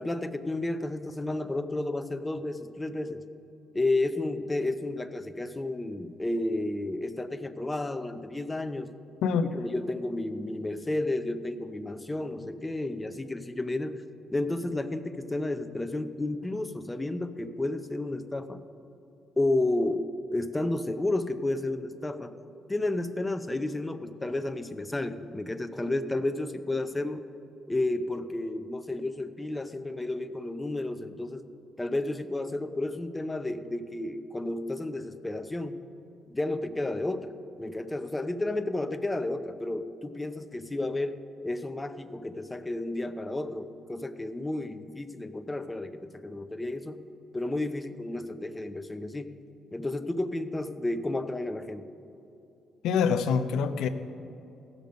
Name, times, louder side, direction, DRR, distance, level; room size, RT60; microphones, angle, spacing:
voice 1, 0.0-3.2 3.7-8.9 9.5-14.0 14.3-18.6 19.4-22.4 22.7-27.3 27.7-31.4 31.8-35.8 36.3-41.2 41.4-47.1 47.3-49.4 49.7-51.8, left 2 dB, 15° left, 8 dB, 0.6 m, -32 dB
voice 2, 9.2-9.5 52.8-53.9, left 6 dB, 85° left, 9 dB, 0.5 m, -25 dB
16.0 x 6.7 x 5.2 m, 2.8 s
cardioid pair, 90°, 0 cm